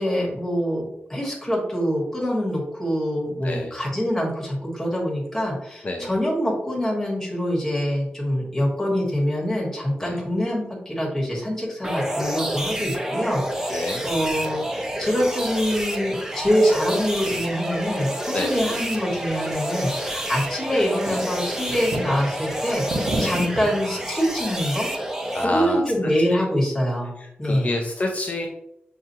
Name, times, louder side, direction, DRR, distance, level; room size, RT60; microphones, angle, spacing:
voice 1, 0.0-24.9 25.4-27.8, equal, 10° left, -4 dB, 1.5 m, -25 dB
sound 1, 11.8-25.4, right 1 dB, 10° right, 0.5 m, -29 dB
voice 2, 13.7-14.0 18.3-18.5 23.2-23.3 25.3-26.4 27.2-28.5, left 2 dB, 40° left, 1 dB, 0.5 m, -28 dB
sound 2, 14.3-24.1, right 1 dB, 70° right, 1.0 m, -36 dB
5.7 x 2.4 x 2.8 m, 0.79 s
wide cardioid pair, 130°, 4 cm